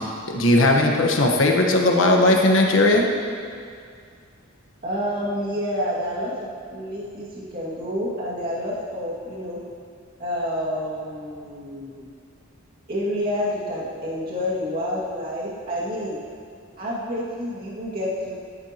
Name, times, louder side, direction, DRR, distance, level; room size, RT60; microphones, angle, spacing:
voice 1, 0.3-3.0, left 2 dB, 65° left, 1 dB, 1.3 m, -17 dB
voice 2, 4.8-6.3 6.7-9.6 10.2-12.1 12.9-16.2 16.8-18.3, equal, 45° right, -7 dB, 2.2 m, -28 dB
14.0 x 11.0 x 2.9 m, 2.3 s
head